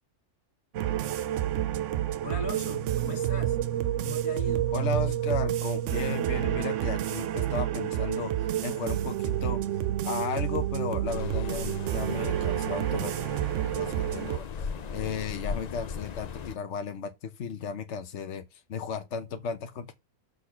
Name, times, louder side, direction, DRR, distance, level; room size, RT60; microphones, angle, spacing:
sound 1, 0.7-14.4, right 12 dB, 65° right, 0.8 m, -29 dB
voice 1, 2.2-3.6 4.0-4.7 5.1-5.2, left 3 dB, 75° left, 2.2 m, -39 dB
voice 2, 4.7-9.6 10.0-13.2 13.7-19.9, left 5 dB, 55° left, 1.1 m, -35 dB
sound 2, 11.1-16.6, left 6 dB, 90° left, 0.3 m, -38 dB
6.5 x 4.1 x 5.7 m
omnidirectional pair, 1.6 m